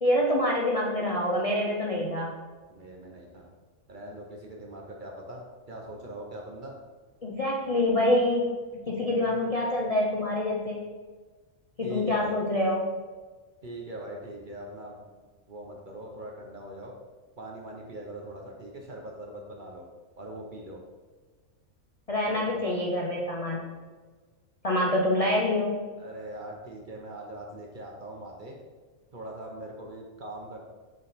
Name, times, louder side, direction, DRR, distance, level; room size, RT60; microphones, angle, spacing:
voice 1, 0.0-2.4 7.2-8.5 8.9-10.8 11.8-12.9 22.1-23.7 24.6-25.8, left 1 dB, 40° left, -3 dB, 0.5 m, -26 dB
voice 2, 2.7-3.5 3.9-6.7 11.8-12.3 13.6-15.0 15.5-16.9 17.4-19.9 20.2-20.8 22.3-22.4 26.0-28.6 29.1-30.6, right 1 dB, 45° right, 0 dB, 0.8 m, -41 dB
6.3 x 3.8 x 4.1 m, 1.4 s
omnidirectional pair, 1.5 m